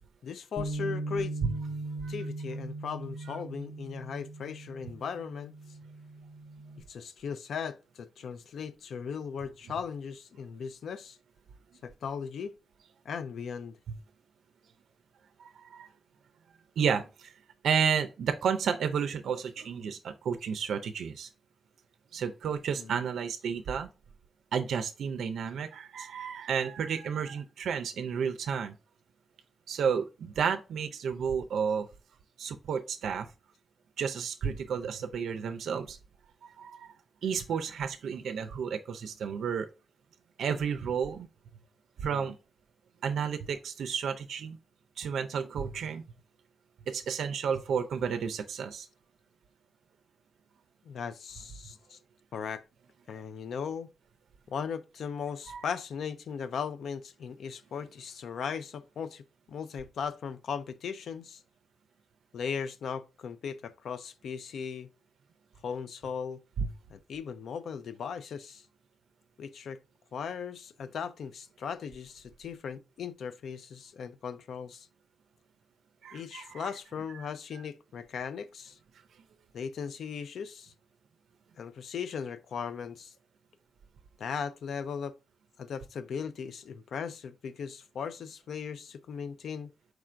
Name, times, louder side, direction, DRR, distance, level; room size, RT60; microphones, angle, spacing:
voice 1, 0.2-1.4 2.1-5.6 6.9-11.2 11.8-12.6 13.0-13.8 22.8-23.0 42.1-42.3 50.9-52.0 52.3-52.6 53.1-53.9 54.5-59.2 59.5-61.4 62.3-64.9 65.6-66.4 66.9-68.6 69.4-69.8 70.1-74.9 76.1-78.8 79.5-80.7 81.6-83.1 84.2-85.2 85.6-89.7, left 6 dB, 70° left, 0.4 m, -38 dB
Bass guitar, 0.6-6.8, right 2 dB, 30° left, 0.8 m, -39 dB
voice 2, 15.4-15.9 16.8-17.3 17.6-21.3 22.1-23.9 24.5-28.8 29.7-31.9 32.4-33.3 34.0-36.0 36.4-36.9 37.2-39.7 40.4-41.3 42.0-42.4 43.0-44.6 45.0-46.0 46.9-48.9 55.5-55.6 66.6-66.7 76.0-76.7 77.2-77.3, right 7 dB, 85° right, 0.4 m, -31 dB
4.7 x 2.5 x 4.3 m
wide cardioid pair, 150°, 0 cm